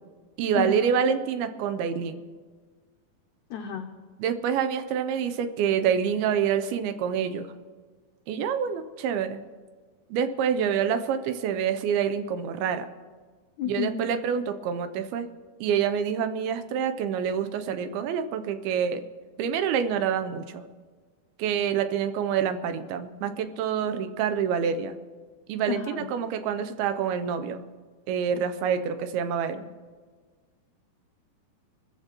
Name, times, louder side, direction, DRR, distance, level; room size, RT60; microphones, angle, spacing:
voice 1, 0.4-2.2 4.2-7.5 8.3-9.4 10.1-12.9 13.7-15.3 15.6-19.0 19.4-20.6 21.4-25.0 25.5-27.6 28.1-29.7, right 7 dB, 80° right, 9 dB, 2.6 m, -27 dB
voice 2, 3.5-3.9 13.6-14.0 25.7-26.1, left 9 dB, 90° left, 4 dB, 1.7 m, -31 dB
25.0 x 14.0 x 3.0 m, 1.5 s
omnidirectional pair, 4.4 m